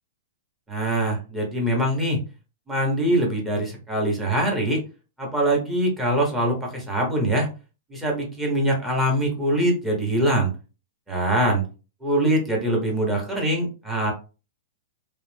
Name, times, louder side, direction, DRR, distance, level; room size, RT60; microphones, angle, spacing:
voice 1, 0.7-2.2 2.7-4.8 5.2-7.5 7.9-10.5 11.1-11.6 12.0-14.1, right 1 dB, 10° right, -2 dB, 1.1 m, -23 dB
2.4 x 2.1 x 3.2 m, 0.33 s
hypercardioid pair, 140°, 0 cm